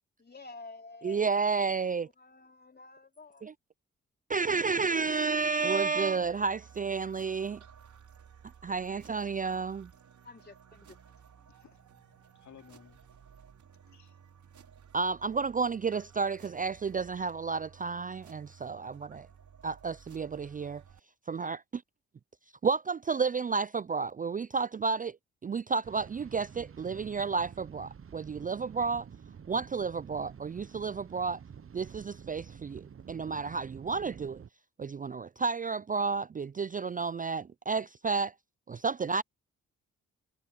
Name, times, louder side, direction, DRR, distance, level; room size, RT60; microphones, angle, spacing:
voice 1, 0.2-1.7 2.0-3.5 10.2-11.0 11.4-11.5, left 3 dB, 30° left, 3.6 m, -50 dB
voice 2, 1.0-2.1 3.4-3.5 4.3-7.6 8.6-9.9 14.9-19.3 19.6-20.8 21.3-21.8 22.6-25.2 25.4-29.1 29.5-31.4 31.7-34.4 34.8-38.3 38.7-39.2, right 5 dB, 25° right, 0.5 m, -31 dB
sound 1, 6.2-21.0, right 7 dB, 60° right, 5.9 m, -55 dB
voice 3, 11.5-13.1 13.7-14.2, left 8 dB, 60° left, 2.9 m, -58 dB
sound 2, 25.8-34.5, right 7 dB, 40° right, 1.1 m, -49 dB
hypercardioid pair, 45°, 33 cm